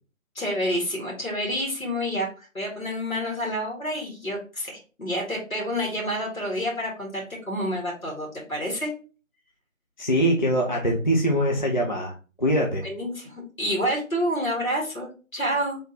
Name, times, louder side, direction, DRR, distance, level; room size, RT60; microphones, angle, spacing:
voice 1, 0.4-8.9 12.8-15.8, equal, 90° left, -1 dB, 2.0 m, -28 dB
voice 2, 10.0-12.9, equal, 35° left, -1 dB, 0.5 m, -23 dB
4.2 x 3.4 x 2.8 m, 0.36 s
figure-of-eight pair, 160°, 40 cm